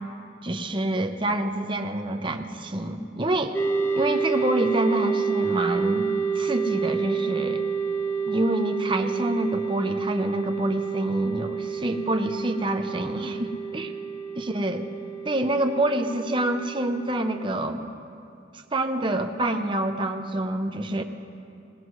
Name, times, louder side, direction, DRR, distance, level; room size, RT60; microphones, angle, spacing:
voice 1, 0.4-3.5 3.9-6.1 6.4-7.6 8.3-13.9 14.4-14.8 15.2-17.9 18.7-21.0, right 1 dB, 25° right, 6 dB, 0.8 m, -27 dB
sound 1, 3.5-17.4, right 5 dB, 10° left, 0.5 m, -29 dB
19.5 x 19.0 x 3.2 m, 2.7 s
head